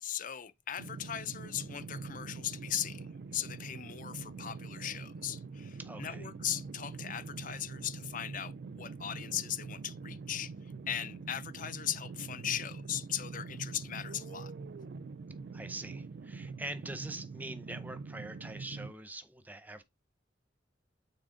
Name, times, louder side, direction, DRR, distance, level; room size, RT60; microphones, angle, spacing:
voice 1, 0.0-14.5, left 10 dB, 45° left, 0.5 m, -38 dB
sound 1, 0.8-18.9, right 4 dB, 65° right, 0.4 m, -44 dB
voice 2, 5.8-6.3 15.5-19.8, right 2 dB, 10° right, 0.7 m, -44 dB
6.3 x 4.1 x 3.8 m
head